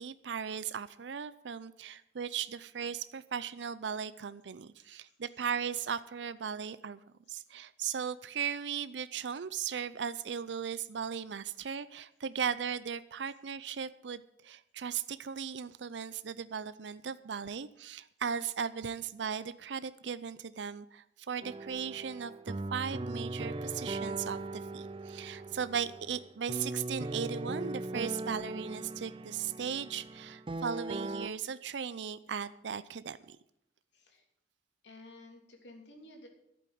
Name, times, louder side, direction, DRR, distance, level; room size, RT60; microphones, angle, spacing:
voice 1, 0.0-7.0 7.3-33.4, right 7 dB, 80° right, 15 dB, 0.5 m, -37 dB
voice 2, 4.8-5.1 33.9-34.2 34.8-36.3, left 1 dB, 90° left, 2 dB, 3.1 m, -53 dB
sound 1, 21.4-31.3, right 2 dB, 30° right, 0.5 m, -39 dB
11.5 x 8.6 x 7.8 m, 0.73 s
head